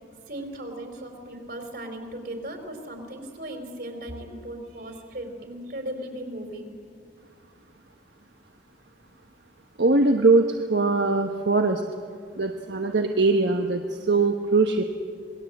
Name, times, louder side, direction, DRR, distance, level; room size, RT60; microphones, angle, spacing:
voice 1, 0.3-6.7, right 1 dB, 60° right, 4 dB, 4.3 m, -37 dB
voice 2, 9.8-11.8 12.4-13.8 14.1-14.8, right 3 dB, 75° right, 4 dB, 1.2 m, -21 dB
27.0 x 20.5 x 8.0 m, 2.2 s
head